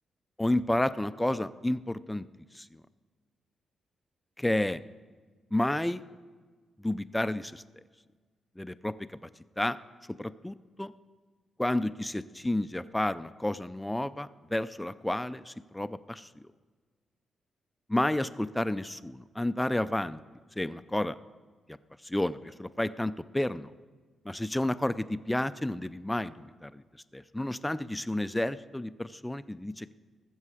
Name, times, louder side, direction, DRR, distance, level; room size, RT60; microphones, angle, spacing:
voice 1, 0.4-2.3 2.6-2.7 4.4-4.8 5.5-6.0 6.8-7.6 8.6-8.9 9.6-9.8 10.2-10.9 11.6-16.3 17.9-20.2 20.6-21.2 21.7-21.8 22.0-23.7 24.3-26.8 27.1-29.9, left 1 dB, 5° left, 14 dB, 0.3 m, -31 dB
19.0 x 7.7 x 4.8 m, 1.5 s
cardioid pair, 125°, 0 cm